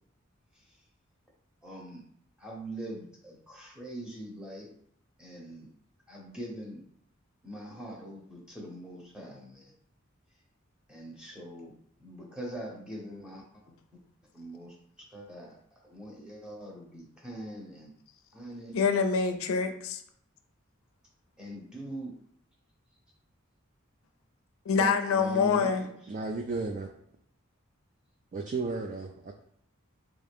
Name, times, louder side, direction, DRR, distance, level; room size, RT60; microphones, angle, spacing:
voice 1, 1.6-2.0 2.4-4.7 5.2-5.7 6.1-6.8 7.4-9.7 10.9-11.7 12.0-13.4 14.3-14.7 15.1-15.6 15.9-17.9 18.3-18.7 21.4-22.1 24.7-25.9, right 1 dB, 5° right, -3 dB, 0.8 m, -42 dB
voice 2, 18.7-20.0 24.7-25.9, left 5 dB, 75° left, 8 dB, 0.4 m, -26 dB
voice 3, 26.1-26.9 28.3-29.3, right 3 dB, 40° right, 3 dB, 0.3 m, -33 dB
3.6 x 2.4 x 3.4 m, 0.68 s
head